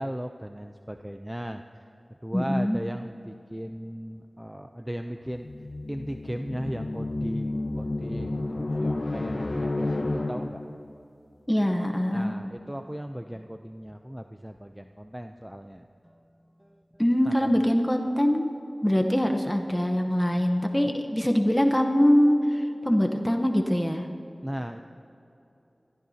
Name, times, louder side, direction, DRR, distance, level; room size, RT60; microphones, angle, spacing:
voice 1, 0.0-1.8 2.2-5.5 5.9-10.6 12.1-17.7 24.4-24.8, equal, 10° right, 6 dB, 0.5 m, -37 dB
voice 2, 2.3-2.8 11.5-12.3 17.0-18.5 18.8-24.1, equal, 10° left, 4 dB, 0.9 m, -23 dB
sound 1, 5.3-10.8, left 2 dB, 70° left, 0.9 m, -31 dB
22.5 x 15.0 x 2.8 m, 2.9 s
wide cardioid pair, 50°, 0 cm